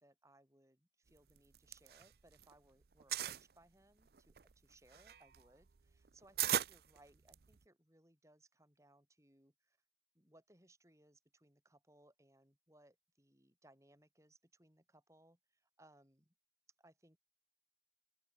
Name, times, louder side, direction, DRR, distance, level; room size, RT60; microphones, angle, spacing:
voice 1, 0.0-9.8 10.2-16.3 16.8-17.2, right 1 dB, 15° right, 5.2 m, -68 dB
sound 1, 1.4-2.5 2.8-3.4 4.1-7.6, right 11 dB, 55° right, 0.6 m, -39 dB
open air
head